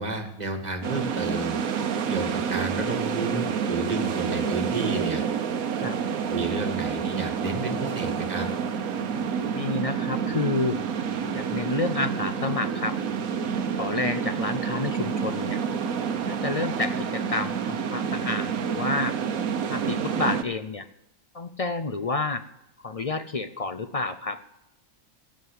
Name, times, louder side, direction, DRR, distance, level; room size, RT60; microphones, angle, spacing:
voice 1, 0.0-1.6 2.1-5.2 6.3-8.5, right 2 dB, 30° right, 4 dB, 1.8 m, -31 dB
sound 1, 0.8-20.4, right 7 dB, 80° right, 1.4 m, -28 dB
voice 2, 9.5-10.8 11.3-13.0 13.7-15.6 16.3-19.2 19.7-20.9 21.3-22.4 22.8-24.4, left 3 dB, 50° left, 10 dB, 0.4 m, -29 dB
16.5 x 7.6 x 8.2 m, 0.87 s
omnidirectional pair, 1.4 m